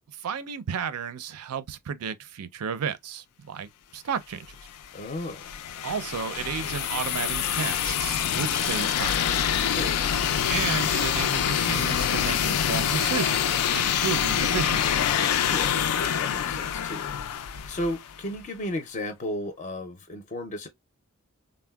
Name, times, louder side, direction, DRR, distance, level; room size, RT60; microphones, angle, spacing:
voice 1, 0.1-4.6 5.8-9.2 10.5-14.9, right 7 dB, 80° right, 0.4 m, -33 dB
sound 1, 4.5-18.3, left 9 dB, 90° left, 0.4 m, -26 dB
voice 2, 4.9-5.4 9.6-10.0 15.4-17.1 17.7-20.7, left 1 dB, 35° left, 0.5 m, -34 dB
3.5 x 2.1 x 2.2 m
head